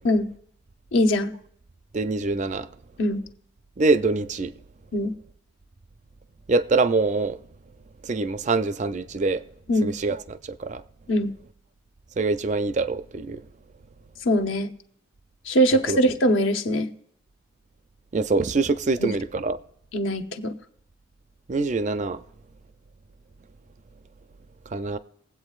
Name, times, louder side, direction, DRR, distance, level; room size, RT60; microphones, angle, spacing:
voice 1, 0.9-1.3 3.0-3.2 4.9-5.1 9.7-9.9 11.1-11.3 14.2-14.7 15.5-16.9 19.0-19.1 19.9-20.5, equal, 75° left, 0.8 m, -22 dB
voice 2, 1.9-2.7 3.8-4.5 6.5-7.4 8.0-9.4 9.8-10.8 12.2-13.4 15.9-16.0 18.1-19.6 21.5-22.2 24.7-25.0, right 3 dB, 35° right, 0.4 m, -24 dB
21.0 x 8.1 x 2.4 m
head